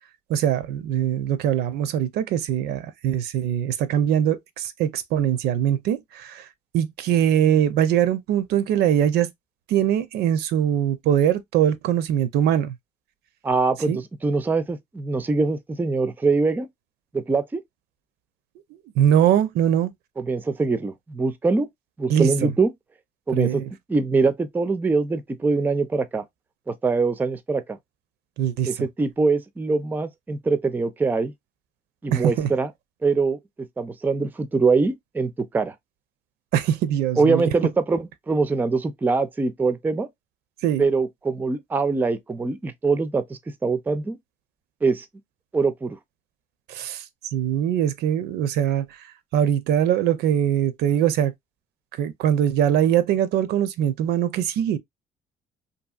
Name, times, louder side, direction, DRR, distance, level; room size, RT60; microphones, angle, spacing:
voice 1, 0.3-6.4 6.7-9.3 9.7-12.7 13.9-14.0 19.0-19.9 22.1-22.5 23.3-23.7 28.4-28.7 32.1-32.5 36.5-37.5 40.6-40.9 46.7-48.9 49.3-51.3 52.0-54.8, right 10 dB, 75° right, 0.5 m, -22 dB
voice 2, 13.4-16.7 17.1-17.6 20.2-21.7 22.0-22.7 23.3-23.6 23.9-26.2 26.7-27.8 28.7-31.3 32.0-32.7 33.0-33.4 33.8-35.7 37.2-40.1 40.8-44.2 44.8-45.0 45.5-46.0, right 4 dB, 10° right, 0.3 m, -23 dB
2.7 x 2.7 x 2.3 m
cardioid pair, 110°, 17 cm